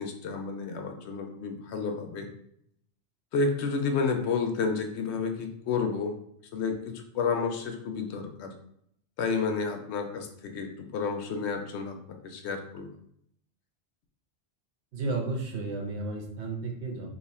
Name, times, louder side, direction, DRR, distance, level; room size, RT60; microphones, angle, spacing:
voice 1, 0.0-2.3 3.3-6.2 6.5-8.5 9.2-12.0 12.2-12.9, left 5 dB, 80° left, 4 dB, 0.9 m, -30 dB
voice 2, 14.9-17.1, right 3 dB, 75° right, 2 dB, 1.0 m, -33 dB
2.8 x 2.3 x 4.1 m, 0.72 s
omnidirectional pair, 1.2 m